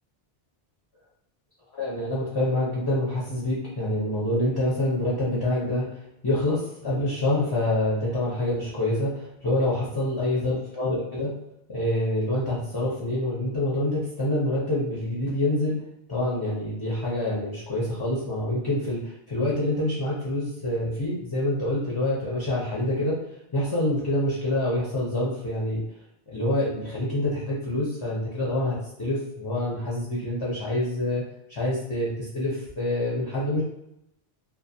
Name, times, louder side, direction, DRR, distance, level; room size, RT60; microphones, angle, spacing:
voice 1, 1.7-11.3 11.7-15.8 16.1-23.1 23.5-25.8 26.3-31.2 31.5-33.6, left 1 dB, 30° left, -7 dB, 0.5 m, -26 dB
2.4 x 2.2 x 2.7 m, 0.82 s
omnidirectional pair, 1.0 m